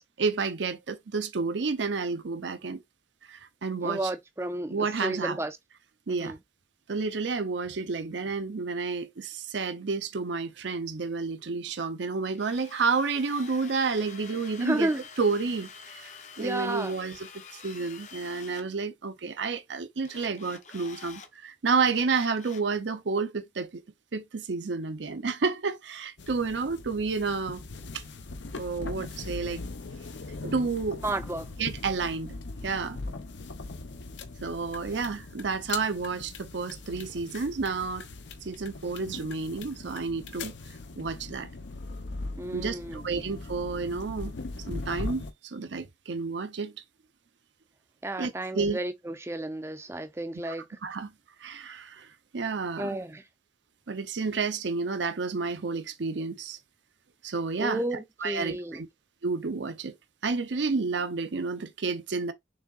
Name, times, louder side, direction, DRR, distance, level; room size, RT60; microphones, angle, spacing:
voice 1, 0.2-2.8 3.2-4.1 4.7-5.4 6.1-6.4 6.9-14.9 15.2-16.1 16.4-23.8 24.1-27.6 27.9-28.0 28.6-29.6 30.4-31.0 31.6-32.4 32.6-33.0 34.4-38.1 38.4-40.5 41.0-41.5 42.5-44.3 44.7-46.7 48.2-48.8 50.4-50.6 50.8-51.1 51.4-52.1 52.3-53.0 53.9-56.6 57.2-57.8 58.2-58.9 59.2-59.9 60.2-62.3, right 4 dB, 85° right, 0.6 m, -30 dB
voice 2, 3.8-5.6 6.1-6.4 14.6-15.0 16.4-17.0 31.0-31.5 42.4-43.0 48.0-50.8 52.8-53.2 57.6-58.8, right 1 dB, 15° right, 0.5 m, -32 dB
Drill, 12.3-18.7 20.0-21.3 21.7-22.7, left 5 dB, 40° left, 0.7 m, -48 dB
sound 1, 26.2-45.3, left 3 dB, 85° left, 0.7 m, -40 dB
6.2 x 3.6 x 2.4 m
head